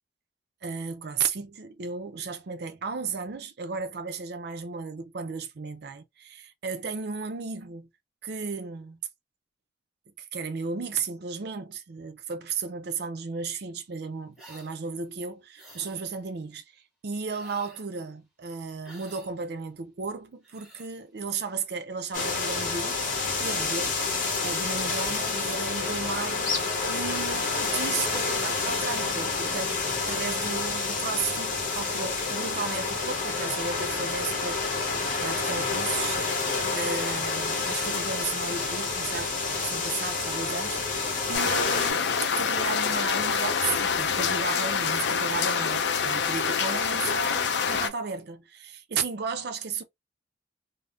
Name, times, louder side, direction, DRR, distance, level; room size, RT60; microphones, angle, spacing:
voice 1, 0.6-7.9 8.2-9.0 10.2-16.6 17.0-23.0 23.4-24.0 24.4-34.6 35.2-36.2 36.7-49.8, right 5 dB, 55° right, 0.5 m, -34 dB
sound 1, 14.3-14.7 15.6-16.0 17.3-17.9 18.8-19.3 20.2-20.9 22.9-23.4 24.3-24.9 27.5-28.1 30.6-31.2, right 1 dB, ahead, 1.2 m, -50 dB
sound 2, 22.1-41.9, left 4 dB, 45° left, 1.0 m, -29 dB
sound 3, 41.3-47.9, left 6 dB, 60° left, 0.4 m, -26 dB
3.4 x 2.0 x 2.4 m
head